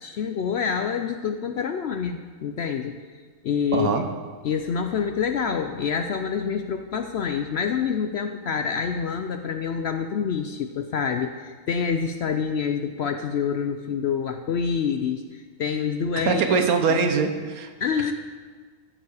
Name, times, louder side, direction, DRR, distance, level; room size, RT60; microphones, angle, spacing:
voice 1, 0.0-2.9 3.4-4.0 4.4-16.6 16.9-17.0 17.8-18.1, left 6 dB, 65° left, 7 dB, 0.7 m, -27 dB
voice 2, 3.7-4.1 16.2-17.7, right 5 dB, 75° right, 6 dB, 1.4 m, -22 dB
14.0 x 7.1 x 4.8 m, 1.5 s
omnidirectional pair, 1.5 m